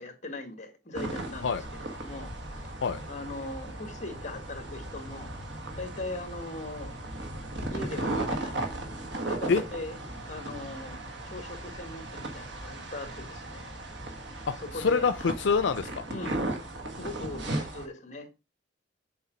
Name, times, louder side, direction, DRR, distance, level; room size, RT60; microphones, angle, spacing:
voice 1, 0.0-2.7 3.1-5.3 5.8-6.9 7.7-8.8 9.2-10.0 10.2-11.0 11.2-13.7 14.6-15.1 16.1-16.6 17.0-18.4, left 2 dB, 40° left, 1.6 m, -40 dB
sound 1, 0.9-17.9, right 1 dB, 75° right, 1.6 m, -36 dB
voice 2, 14.5-16.0, left 5 dB, 75° left, 0.5 m, -26 dB
7.0 x 4.5 x 5.1 m
head